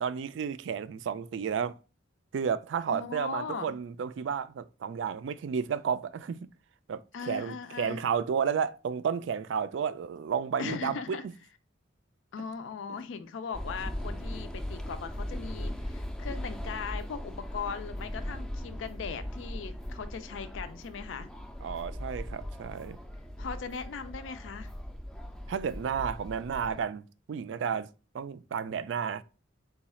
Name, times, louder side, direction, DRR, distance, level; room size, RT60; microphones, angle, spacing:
voice 1, 0.0-1.7 2.3-6.4 6.9-11.2 21.6-23.0 25.5-27.9 28.1-29.2, right 7 dB, 75° right, 0.3 m, -32 dB
voice 2, 2.9-3.8 7.1-8.0 10.6-11.2 12.3-21.3 23.4-24.7, left 5 dB, 80° left, 0.4 m, -39 dB
sound 1, 13.5-26.8, equal, 5° left, 0.4 m, -39 dB
3.9 x 2.3 x 4.1 m
head